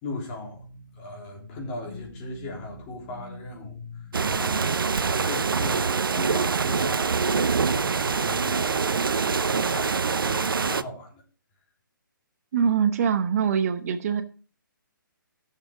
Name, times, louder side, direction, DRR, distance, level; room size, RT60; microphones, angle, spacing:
voice 1, 0.0-7.1 7.6-11.2, left 2 dB, 25° left, 3.5 m, -38 dB
sound 1, 4.1-10.8, right 5 dB, 85° right, 0.6 m, -25 dB
voice 2, 12.5-14.2, right 7 dB, 45° right, 1.0 m, -23 dB
16.5 x 6.7 x 3.6 m
hypercardioid pair, 145°, 11 cm